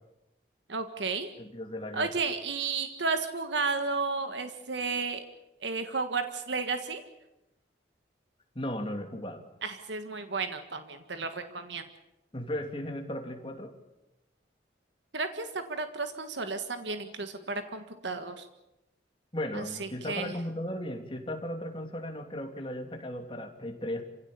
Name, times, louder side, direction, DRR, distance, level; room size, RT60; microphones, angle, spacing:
voice 1, 0.7-1.3 1.9-5.2 5.6-7.0 9.6-11.8 15.1-18.5 19.5-20.3, right 4 dB, 85° right, 8 dB, 1.7 m, -33 dB
voice 2, 1.4-2.1 8.5-9.5 12.3-13.7 19.3-24.0, left 1 dB, 30° left, 4 dB, 2.7 m, -36 dB
27.5 x 16.5 x 8.6 m, 0.94 s
head